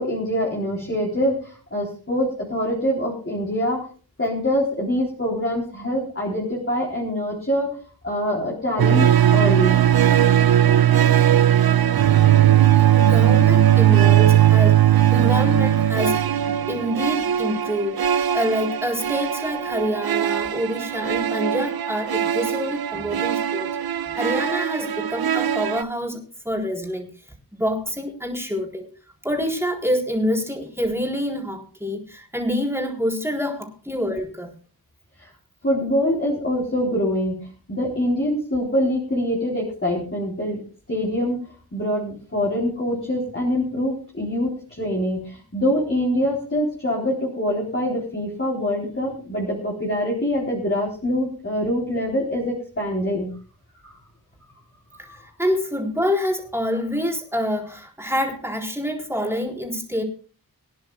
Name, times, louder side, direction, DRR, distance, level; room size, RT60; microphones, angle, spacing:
voice 1, 0.0-1.4 1.7-3.8 4.2-7.7 8.0-9.8 35.6-40.6 40.9-41.4 41.7-53.3 55.1-55.2, equal, 35° left, -4 dB, 3.9 m, -24 dB
sound 1, 8.8-25.8, right 11 dB, 70° right, 0.5 m, -18 dB
voice 2, 12.9-16.2 16.5-18.0 18.3-23.7 24.1-26.2 26.4-27.1 27.6-28.9 29.2-34.5 55.4-60.0, equal, 5° right, 0 dB, 4.0 m, -26 dB
24.0 x 10.5 x 2.4 m, 0.39 s
wide cardioid pair, 50°, 38 cm